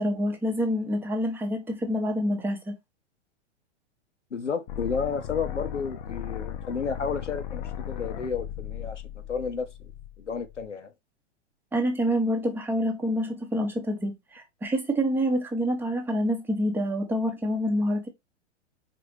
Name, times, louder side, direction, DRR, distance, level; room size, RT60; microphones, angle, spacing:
voice 1, 0.0-2.8 11.7-18.1, equal, 5° right, 0.9 m, -27 dB
voice 2, 4.3-9.0 9.3-9.9 10.2-10.9, left 5 dB, 85° left, 0.8 m, -32 dB
sound 1, 4.7-10.7, left 10 dB, 40° left, 0.7 m, -37 dB
4.2 x 3.9 x 3.0 m
figure-of-eight pair, 100°, 35 cm